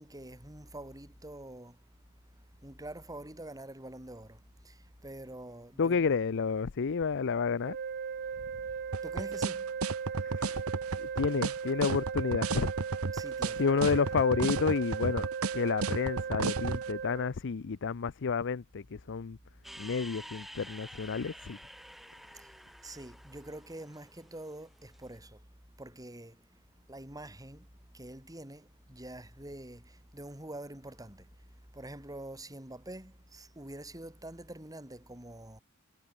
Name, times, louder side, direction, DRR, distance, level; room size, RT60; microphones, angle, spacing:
voice 1, 0.0-1.7 2.6-4.4 4.6-4.7 5.0-6.1 9.0-9.7 13.1-13.7 22.8-25.4 25.8-26.4 26.9-27.7 27.9-29.8 30.1-31.2 31.7-35.6, right 1 dB, 15° right, 7.9 m, -45 dB
voice 2, 5.8-7.8 10.2-10.6 11.0-12.7 13.6-15.3 15.5-19.4 19.8-21.6, left 5 dB, 60° left, 0.5 m, -30 dB
sound 1, 7.6-17.3, right 6 dB, 50° right, 0.5 m, -37 dB
sound 2, 8.9-16.8, right 3 dB, 90° right, 1.2 m, -32 dB
sound 3, 19.6-25.0, equal, ahead, 7.2 m, -50 dB
head